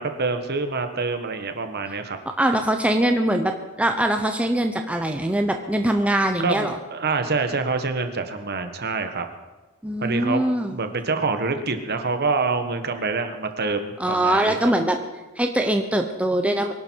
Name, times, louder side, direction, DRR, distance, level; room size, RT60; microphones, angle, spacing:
voice 1, 0.0-2.2 6.4-9.3 10.0-10.4 10.7-14.6, right 4 dB, 45° right, 7 dB, 1.4 m, -26 dB
voice 2, 2.4-6.8 9.8-10.7 14.0-15.0 15.4-16.7, right 1 dB, 5° right, 4 dB, 0.8 m, -22 dB
23.5 x 11.5 x 4.7 m, 1.2 s
head